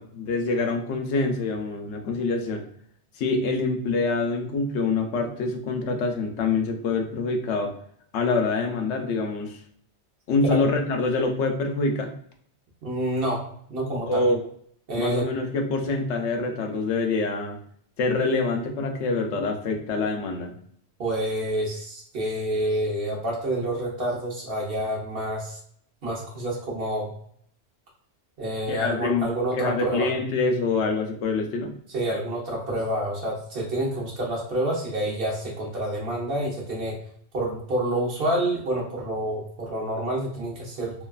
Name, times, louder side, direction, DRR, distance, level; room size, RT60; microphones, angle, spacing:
voice 1, 0.0-2.6 3.2-7.7 8.1-9.6 10.3-12.1 14.1-14.4 15.0-17.6 18.0-20.5 28.7-31.7, left 3 dB, 85° left, 3 dB, 0.9 m, -25 dB
voice 2, 12.8-13.4 13.7-14.2 14.9-15.2 21.0-25.6 26.0-27.1 28.4-30.1 31.9-37.0 37.3-40.9, right 1 dB, 60° right, -3 dB, 1.0 m, -28 dB
3.1 x 2.2 x 2.3 m, 0.62 s
omnidirectional pair, 1.1 m